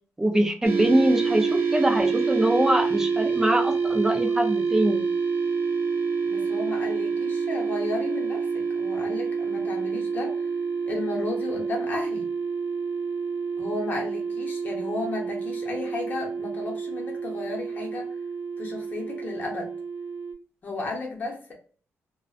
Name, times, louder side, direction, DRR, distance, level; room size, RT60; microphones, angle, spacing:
voice 1, 0.2-5.0, right 1 dB, 10° right, 4 dB, 0.4 m, -23 dB
sound 1, 0.6-20.3, right 5 dB, 50° right, 0.7 m, -28 dB
voice 2, 6.3-10.5 10.8-12.3 13.6-18.2 18.6-19.7 20.6-21.5, left 3 dB, 35° left, 0 dB, 0.8 m, -34 dB
2.4 x 2.1 x 2.4 m, 0.41 s
wide cardioid pair, 165°, 5 cm